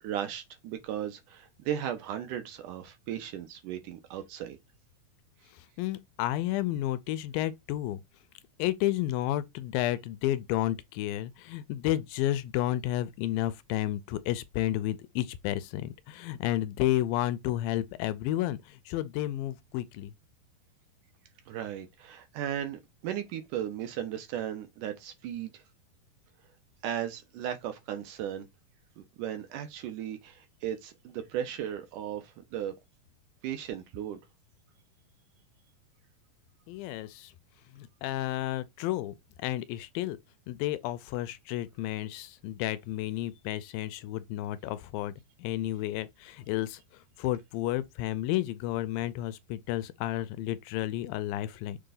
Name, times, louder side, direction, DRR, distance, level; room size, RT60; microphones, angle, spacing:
voice 1, 0.0-4.6 21.5-25.6 26.8-28.5 29.0-32.7 33.4-34.2, right 10 dB, 70° right, 2.3 m, -36 dB
voice 2, 5.8-8.0 8.6-20.1 36.7-37.3 37.7-40.2 40.5-45.1 45.4-46.8 47.2-51.8, left 14 dB, 80° left, 2.3 m, -31 dB
6.9 x 3.8 x 3.9 m
omnidirectional pair, 4.2 m